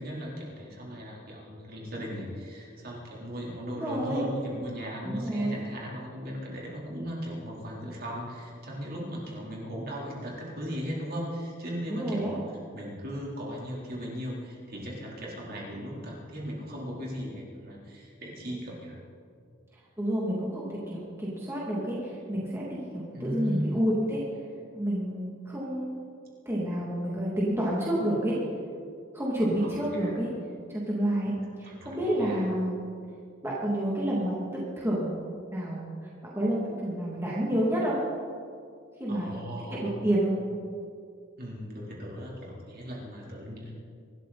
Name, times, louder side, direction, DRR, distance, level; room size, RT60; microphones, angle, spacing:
voice 1, 0.0-12.4 12.7-19.0 23.1-23.8 29.6-30.1 31.6-32.4 39.1-39.9 41.4-43.7, equal, 45° right, -4 dB, 3.9 m, -37 dB
voice 2, 3.8-4.2 5.0-5.6 11.9-12.4 20.0-24.2 24.7-26.0 26.4-28.4 29.1-30.3 30.7-32.9 33.4-35.2 35.5-38.0 39.0-39.4 39.7-40.3, right 1 dB, 10° right, -6 dB, 2.7 m, -29 dB
25.0 x 12.5 x 4.3 m, 2.2 s
head